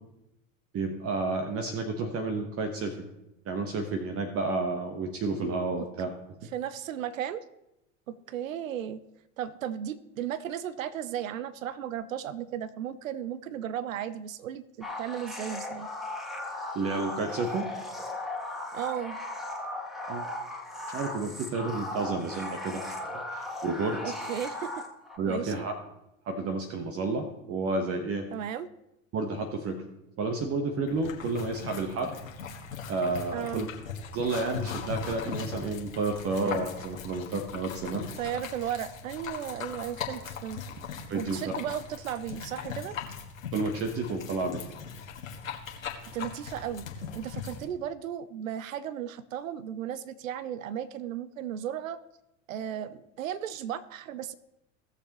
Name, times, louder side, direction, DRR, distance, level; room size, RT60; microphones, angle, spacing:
voice 1, 0.7-3.1 3.4-6.1 16.7-17.7 20.1-20.2 20.9-23.0 23.3-24.1 25.2-25.7 26.2-28.3 29.1-29.8 30.2-32.1 32.9-33.7 34.1-38.1 41.1-41.4 43.5-44.6, right 3 dB, 35° right, 5 dB, 1.1 m, -31 dB
voice 2, 6.5-7.4 8.1-9.0 9.4-15.9 18.7-19.2 24.0-24.9 25.3-25.7 28.3-28.7 33.3-33.6 38.2-40.6 41.1-43.0 46.1-46.9 47.1-52.0 52.5-54.3, right 10 dB, 85° right, 16 dB, 0.6 m, -35 dB
sound 1, 14.8-25.2, left 1 dB, ahead, 1.8 m, -37 dB
sound 2, 30.8-47.6, left 6 dB, 85° left, 1.7 m, -39 dB
18.0 x 6.8 x 3.0 m, 0.88 s
hypercardioid pair, 85°, 39 cm